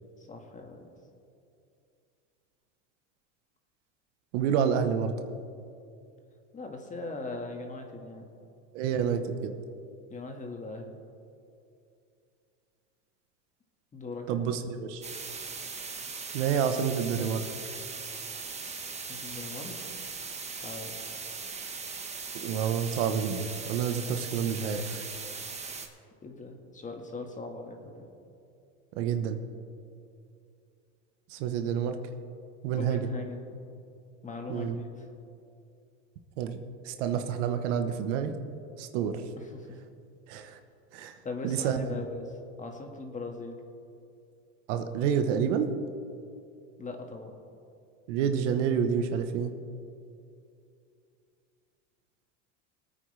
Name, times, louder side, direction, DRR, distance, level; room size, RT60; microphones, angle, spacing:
voice 1, 0.2-0.8 6.5-8.3 10.1-11.0 13.9-14.5 19.1-20.0 20.5-20.9 26.2-28.1 32.7-33.5 34.2-34.9 39.4-39.8 41.2-43.6 46.8-47.3, left 3 dB, 20° left, 3 dB, 1.8 m, -40 dB
voice 2, 4.3-5.1 8.7-9.6 14.3-15.0 16.3-17.5 22.4-25.0 29.0-29.4 31.3-32.0 32.6-33.0 34.5-34.8 36.4-36.6 36.9-38.4 38.8-39.2 40.3-40.6 40.9-41.1 41.4-41.8 44.7-45.7 48.1-49.5, right 7 dB, 75° right, 8 dB, 1.2 m, -28 dB
sound 1, 15.0-25.9, right 5 dB, 20° right, 1.2 m, -39 dB
23.0 x 9.1 x 3.4 m, 2.5 s
supercardioid pair, 115°, 37 cm